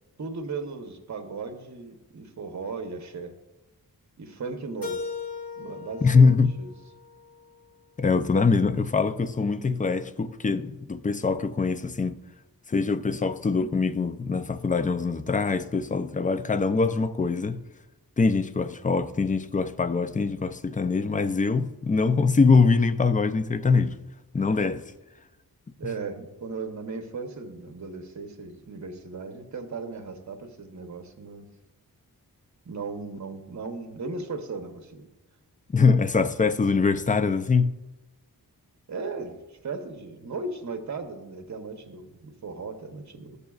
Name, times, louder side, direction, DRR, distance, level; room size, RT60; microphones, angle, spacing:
voice 1, 0.2-3.4 4.2-5.0 5.6-6.7 25.8-31.5 32.6-35.1 38.9-43.4, right 4 dB, 50° right, 0.9 m, -37 dB
Keyboard (musical), 4.8-7.7, left 5 dB, 65° left, 1.5 m, -38 dB
voice 2, 6.0-6.5 8.0-12.2 12.7-17.6 18.2-24.0 24.3-24.8 35.7-37.8, left 4 dB, 20° left, 0.4 m, -23 dB
13.0 x 6.8 x 2.4 m
wide cardioid pair, 65°, 37 cm